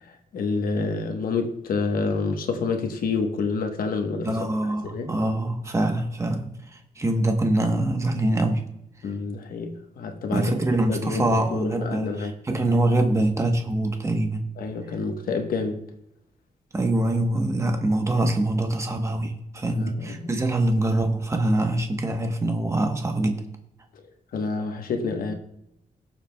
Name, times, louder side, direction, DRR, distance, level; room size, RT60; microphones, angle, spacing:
voice 1, 0.3-5.1 9.0-10.5 10.9-12.3 14.6-15.8 19.7-20.3 24.3-25.3, left 4 dB, 85° left, 1.2 m, -28 dB
voice 2, 4.2-6.5 7.0-8.6 10.3-14.5 16.7-23.4, right 1 dB, 20° right, 1.1 m, -24 dB
21.5 x 7.3 x 2.3 m
wide cardioid pair, 140°, 14 cm